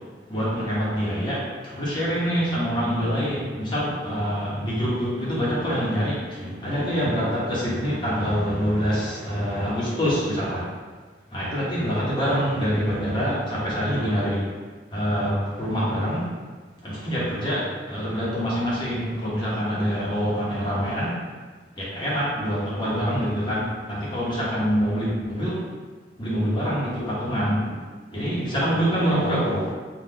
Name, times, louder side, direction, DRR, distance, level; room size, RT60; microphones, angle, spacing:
voice 1, 0.3-10.7 11.3-14.4 14.9-16.2 16.8-21.2 21.7-25.6 26.2-27.7 28.1-29.7, equal, 25° left, -8 dB, 1.1 m, -25 dB
3.6 x 2.5 x 3.8 m, 1.4 s
head